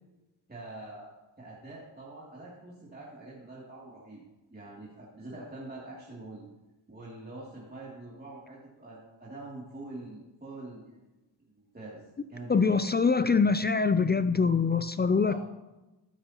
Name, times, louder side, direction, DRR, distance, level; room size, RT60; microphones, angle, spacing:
voice 1, 0.5-4.2 4.5-6.4 6.9-11.1 11.4-12.7 15.3-15.4, right 2 dB, 20° right, -6 dB, 2.8 m, -45 dB
voice 2, 12.5-15.4, left 5 dB, 25° left, 12 dB, 0.4 m, -24 dB
12.5 x 9.6 x 3.0 m, 1.0 s
cardioid pair, 70°, 45 cm